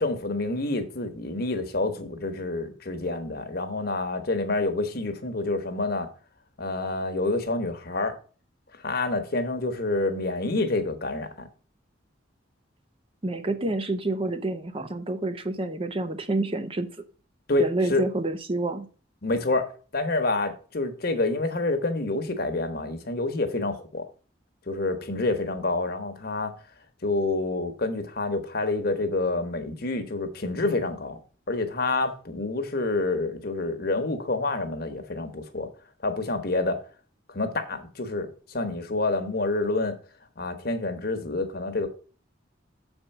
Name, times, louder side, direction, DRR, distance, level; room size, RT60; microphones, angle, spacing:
voice 1, 0.0-6.1 6.6-8.2 8.8-11.5 17.5-18.0 19.2-24.1 24.7-26.5 27.0-31.2 31.5-35.7 36.0-36.8 37.3-40.0 40.4-41.9, left 2 dB, 55° left, 1.1 m, -28 dB
voice 2, 13.2-16.9 17.6-18.9, right 2 dB, 30° right, 0.7 m, -28 dB
6.7 x 4.5 x 6.5 m
head